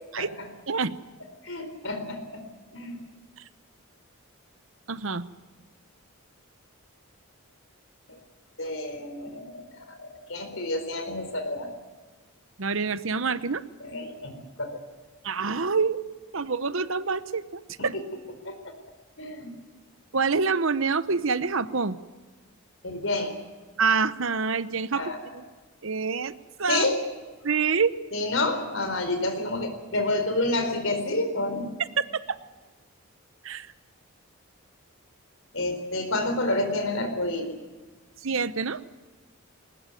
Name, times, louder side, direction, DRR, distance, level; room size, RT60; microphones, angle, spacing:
voice 1, 1.4-2.4 2.7-3.0 8.1-8.2 8.6-11.7 13.8-14.3 14.6-14.8 17.8-18.0 18.4-18.7 19.2-19.5 22.8-23.3 24.9-25.4 26.7-27.0 28.1-31.7 35.5-37.5, left 2 dB, 65° left, 7 dB, 4.2 m, -29 dB
voice 2, 4.9-5.3 12.6-13.6 15.2-16.0 16.3-18.0 20.1-22.0 23.8-25.0 25.8-26.3 26.6-26.8 27.4-27.9 32.3-32.4 33.4-33.7 38.2-38.8, right 5 dB, 65° right, 14 dB, 0.9 m, -26 dB
20.5 x 20.0 x 9.3 m, 1.3 s
head